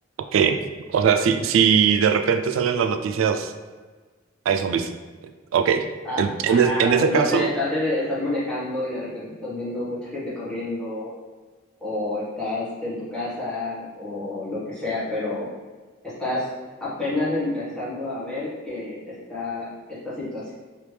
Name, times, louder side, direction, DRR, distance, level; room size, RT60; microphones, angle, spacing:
voice 1, 0.9-3.5 4.5-4.9 5.5-5.8 6.2-7.5, right 7 dB, 85° right, 7 dB, 0.3 m, -20 dB
voice 2, 6.5-11.1 11.8-15.5 16.0-16.5 16.8-20.5, left 2 dB, 5° left, -11 dB, 1.2 m, -29 dB
3.2 x 2.9 x 3.2 m, 1.4 s
head